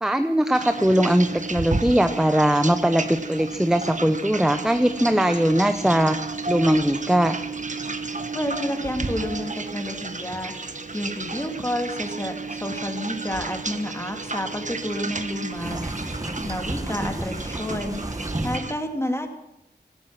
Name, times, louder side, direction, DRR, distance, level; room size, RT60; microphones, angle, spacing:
voice 1, 0.0-6.2 6.5-7.3, equal, 5° right, 9 dB, 0.9 m, -20 dB
sound 1, 0.5-18.7, right 3 dB, 45° right, 1.3 m, -32 dB
voice 2, 8.3-10.5 10.9-15.8 16.4-18.0 18.4-19.3, left 1 dB, 15° left, 4 dB, 2.6 m, -30 dB
sound 2, 15.5-18.6, right 1 dB, 20° right, 1.2 m, -31 dB
17.0 x 12.5 x 6.1 m, 0.83 s
wide cardioid pair, 50°, 18 cm